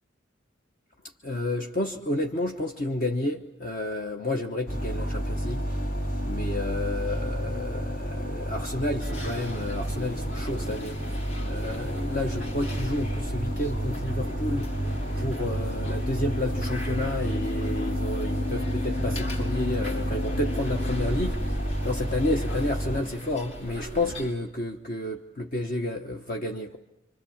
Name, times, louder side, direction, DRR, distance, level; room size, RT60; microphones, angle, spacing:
voice 1, 1.2-5.7 6.2-14.7 15.2-26.8, left 1 dB, 45° left, 2 dB, 1.1 m, -31 dB
sound 1, 4.7-23.0, equal, 60° left, 3.5 m, -31 dB
sound 2, 9.0-24.3, right 1 dB, 85° left, 4.1 m, -37 dB
sound 3, 12.6-21.1, left 6 dB, 30° left, 1.4 m, -38 dB
28.0 x 25.5 x 7.2 m, 0.89 s
head